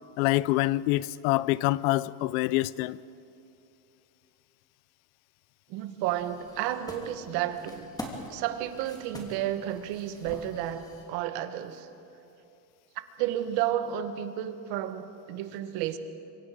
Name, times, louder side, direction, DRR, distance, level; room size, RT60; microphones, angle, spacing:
voice 1, 0.2-3.0, left 18 dB, 75° left, 0.7 m, -26 dB
voice 2, 5.7-7.9 8.3-11.9 13.2-16.0, right 11 dB, 65° right, 1.6 m, -32 dB
sound 1, 6.0-11.1, left 1 dB, 10° left, 2.8 m, -44 dB
25.5 x 24.5 x 5.0 m
cardioid pair, 145°, 42 cm